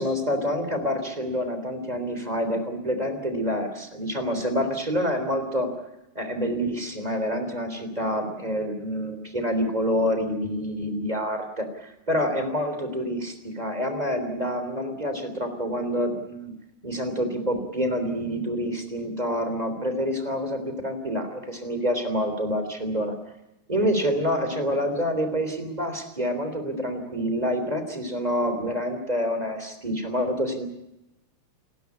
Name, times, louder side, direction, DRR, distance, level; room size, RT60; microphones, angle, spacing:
voice 1, 0.0-5.7 6.1-16.5 16.8-23.1 23.7-30.6, equal, 10° right, 7 dB, 2.8 m, -27 dB
30.0 x 12.5 x 9.6 m, 0.90 s
omnidirectional pair, 4.7 m